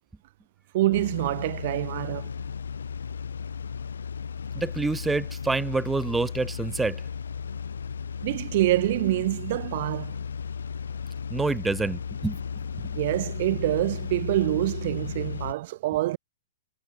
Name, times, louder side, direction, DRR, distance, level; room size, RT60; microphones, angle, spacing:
voice 1, 0.7-2.3 8.2-10.2 12.9-16.2, right 16 dB, 55° right, 1.5 m, -26 dB
sound 1, 0.9-15.5, left 6 dB, 85° left, 2.4 m, -35 dB
voice 2, 4.5-7.0 11.3-12.4, right 3 dB, 10° right, 1.4 m, -27 dB
hypercardioid pair, 125°, 0 cm